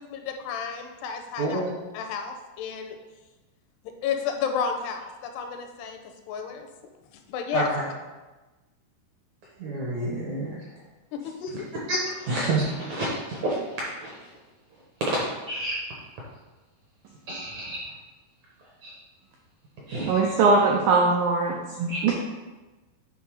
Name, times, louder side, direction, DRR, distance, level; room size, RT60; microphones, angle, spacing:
voice 1, 0.0-1.6 1.9-3.0 3.9-6.0 6.3-6.7 7.3-7.7 11.1-11.6, left 6 dB, 80° left, 5 dB, 2.6 m, -31 dB
voice 2, 1.4-1.7 7.5-7.8 9.6-10.6 11.9-14.1 15.5-15.7 17.3-17.8 18.8-18.9 19.9-20.3 21.8-22.0, right 2 dB, 70° right, -5 dB, 1.7 m, -29 dB
voice 3, 20.1-21.6 22.0-22.1, right 4 dB, 85° right, -1 dB, 2.0 m, -20 dB
9.8 x 3.5 x 4.8 m, 1.2 s
omnidirectional pair, 4.8 m